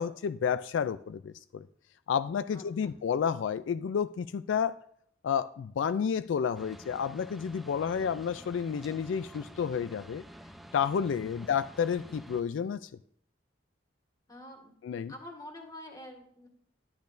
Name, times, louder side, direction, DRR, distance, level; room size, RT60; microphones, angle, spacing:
voice 1, 0.0-1.7 2.1-4.8 5.2-10.2 10.7-12.9 14.8-15.1, left 7 dB, 80° left, 0.3 m, -30 dB
voice 2, 2.5-2.9 14.3-14.7 15.1-16.5, left 1 dB, 20° left, 1.8 m, -47 dB
sound 1, 6.5-12.4, equal, ahead, 0.6 m, -50 dB
10.5 x 10.5 x 2.6 m
head